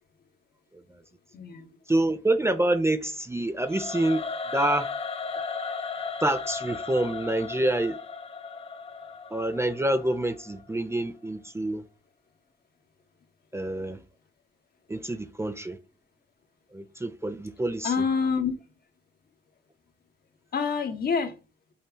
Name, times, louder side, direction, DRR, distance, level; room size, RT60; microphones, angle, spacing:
voice 1, 1.3-1.8 15.0-15.1 17.8-18.5 20.5-21.4, left 5 dB, 50° left, 1.6 m, -27 dB
voice 2, 1.9-4.2 4.5-4.9 6.2-8.0 9.3-11.8 13.5-14.0 14.9-15.8 16.7-17.9, right 1 dB, 15° right, 0.7 m, -27 dB
Singing / Musical instrument, 3.6-10.7, left 5 dB, 30° left, 1.1 m, -36 dB
5.6 x 4.3 x 5.4 m
cardioid pair, 90°, 20 cm